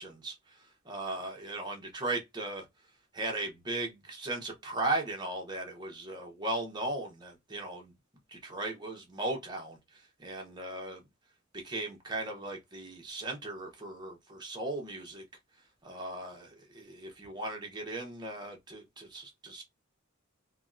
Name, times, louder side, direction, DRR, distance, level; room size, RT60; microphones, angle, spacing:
voice 1, 0.0-2.7 3.1-7.9 8.3-11.0 11.5-15.2 15.8-19.6, right 2 dB, 20° right, 0.9 m, -37 dB
3.4 x 2.3 x 2.5 m
head